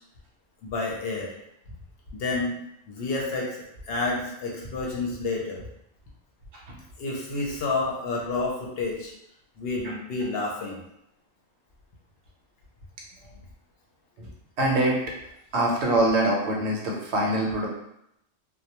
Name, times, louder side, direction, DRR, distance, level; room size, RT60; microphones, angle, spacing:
voice 1, 0.6-1.3 2.1-2.6 2.9-3.6 3.8-5.6 7.0-9.1 9.6-10.8, left 3 dB, 65° left, -2 dB, 0.7 m, -29 dB
voice 2, 14.6-15.0 15.5-17.7, right 1 dB, 70° right, -1 dB, 0.9 m, -24 dB
2.1 x 2.1 x 2.8 m, 0.79 s
omnidirectional pair, 1.2 m